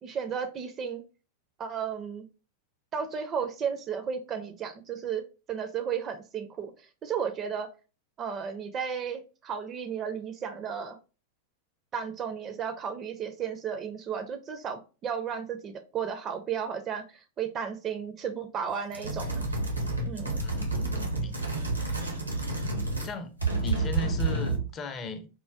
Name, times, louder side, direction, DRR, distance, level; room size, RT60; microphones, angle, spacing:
voice 1, 0.0-1.0 1.6-2.2 2.9-7.7 8.2-11.0 11.9-19.4 20.1-20.4, right 7 dB, 30° right, 0.4 m, -34 dB
sound 1, 18.9-23.1 23.4-24.7, right 2 dB, 85° right, 0.7 m, -29 dB
voice 2, 20.4-21.6 23.0-25.3, left 2 dB, 30° left, 0.5 m, -38 dB
4.3 x 2.1 x 2.3 m
figure-of-eight pair, 90°, 0 cm